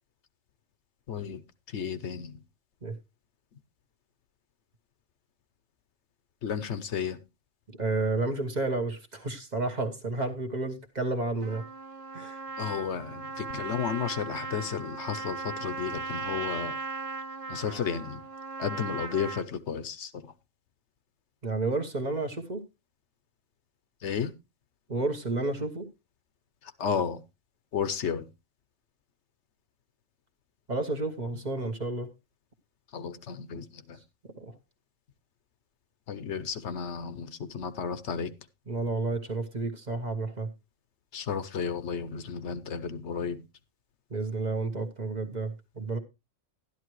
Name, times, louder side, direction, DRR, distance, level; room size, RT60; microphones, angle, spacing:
voice 1, 1.1-1.4 1.7-2.4 6.4-7.2 12.6-16.8 17.5-18.2 18.6-20.3 24.0-24.3 26.8-27.2 27.7-28.3 32.9-34.0 36.1-38.3 41.1-43.4, left 7 dB, 65° left, 1.0 m, -33 dB
voice 2, 7.7-11.6 12.1-12.4 21.4-22.6 24.9-25.9 30.7-32.1 34.4-34.5 38.7-40.5 44.1-46.0, right 3 dB, 35° right, 1.2 m, -31 dB
Trumpet, 11.4-19.5, right 4 dB, 55° right, 1.3 m, -37 dB
12.0 x 11.0 x 3.1 m
omnidirectional pair, 1.3 m